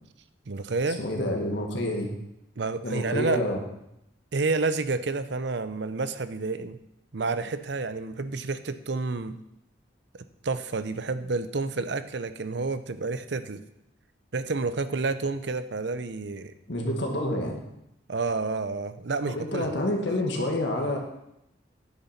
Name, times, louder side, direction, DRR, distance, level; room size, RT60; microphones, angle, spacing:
voice 1, 0.5-1.0 2.6-3.4 4.3-6.8 7.1-9.4 10.4-13.6 14.3-16.5 18.1-20.0, right 3 dB, 60° right, 12 dB, 0.6 m, -29 dB
voice 2, 1.0-2.1 2.8-3.6 16.7-17.6 19.3-21.0, left 1 dB, 65° left, 1 dB, 1.9 m, -28 dB
10.0 x 6.7 x 5.8 m, 0.83 s
head